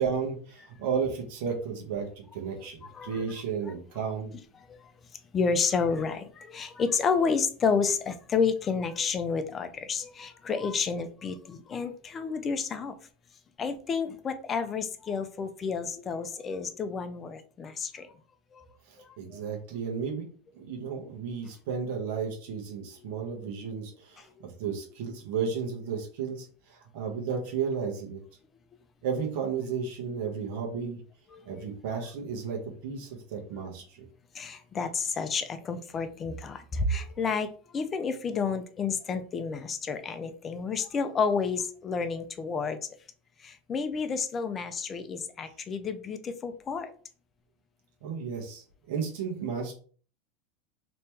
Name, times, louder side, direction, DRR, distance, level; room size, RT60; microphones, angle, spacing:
voice 1, 0.0-4.3 18.9-20.3 20.5-28.2 29.0-31.0 31.5-34.0 48.0-49.7, right 6 dB, 70° right, 0 dB, 1.0 m, -33 dB
voice 2, 5.3-12.9 13.6-18.1 18.5-18.6 31.3-31.6 34.3-42.8 43.4-46.9, left 5 dB, 25° left, 10 dB, 0.4 m, -30 dB
3.0 x 2.9 x 3.4 m, 0.44 s
supercardioid pair, 135°, 0 cm